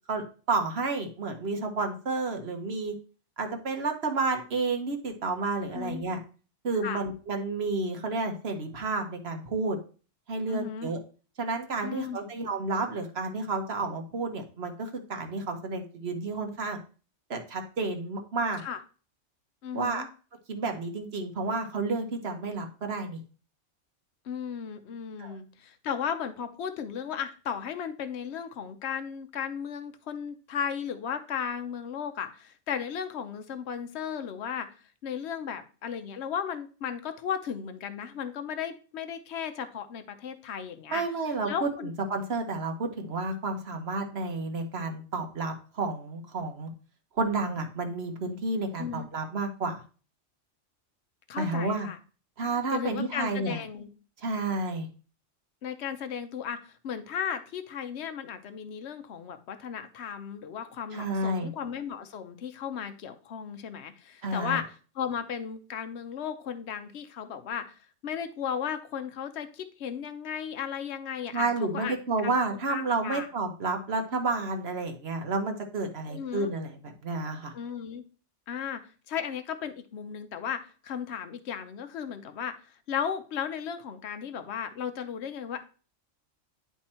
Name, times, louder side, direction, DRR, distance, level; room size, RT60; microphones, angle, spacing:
voice 1, 0.1-2.9 3.4-6.2 6.6-9.8 10.3-11.0 11.4-16.8 17.3-18.6 19.7-20.0 20.5-23.2 25.2-25.4 40.9-46.7 47.2-49.8 51.4-51.9 52.4-53.6 54.2-54.9 60.9-61.5 64.2-64.6 71.3-77.5, right 3 dB, 55° right, 5 dB, 1.3 m, -31 dB
voice 2, 5.7-6.0 6.8-7.0 10.5-10.9 11.8-12.2 18.6-18.8 19.6-20.1 24.2-41.0 41.4-41.9 48.8-49.1 51.3-52.0 52.7-53.9 55.6-71.9 72.2-72.3 72.7-73.3 76.1-76.5 77.5-78.0 78.5-85.6, left 8 dB, 60° left, 9 dB, 1.0 m, -35 dB
10.0 x 3.5 x 4.3 m, 0.37 s
omnidirectional pair, 1.3 m